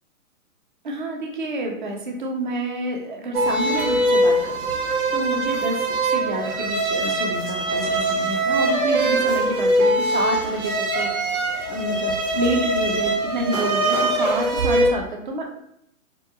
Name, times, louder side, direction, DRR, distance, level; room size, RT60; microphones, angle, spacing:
voice 1, 0.8-15.5, right 1 dB, 35° right, 1 dB, 0.4 m, -29 dB
sound 1, 3.3-14.9, right 1 dB, 85° right, 0.7 m, -22 dB
2.6 x 2.0 x 2.4 m, 0.75 s
figure-of-eight pair, 125°, 43 cm